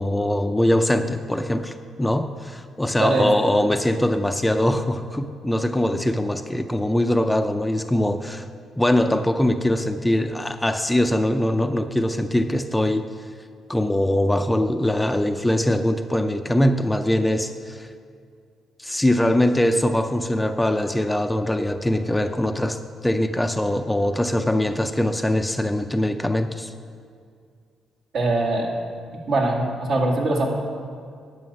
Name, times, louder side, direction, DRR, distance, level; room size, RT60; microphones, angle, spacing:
voice 1, 0.0-8.5 8.8-13.1 13.7-17.9 18.8-22.8 23.0-26.7, left 1 dB, 10° left, 8 dB, 0.5 m, -22 dB
voice 2, 28.1-28.7 29.3-30.5, right 2 dB, 65° right, -1 dB, 2.2 m, -22 dB
11.0 x 5.5 x 8.6 m, 2.2 s
cardioid pair, 90°, 0 cm